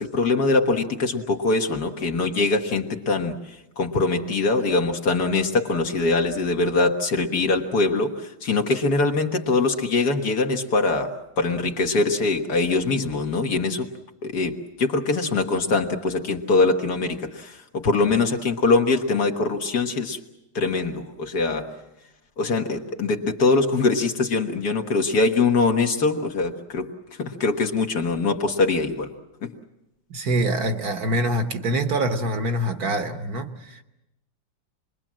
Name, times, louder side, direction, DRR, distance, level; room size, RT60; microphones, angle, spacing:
voice 1, 0.0-13.9 14.2-20.2 20.6-21.7 22.4-26.9 27.2-29.1 29.4-29.5, left 3 dB, 60° left, 2.0 m, -23 dB
voice 2, 30.1-33.8, right 1 dB, 55° right, 1.6 m, -25 dB
28.0 x 21.5 x 7.5 m
omnidirectional pair, 2.0 m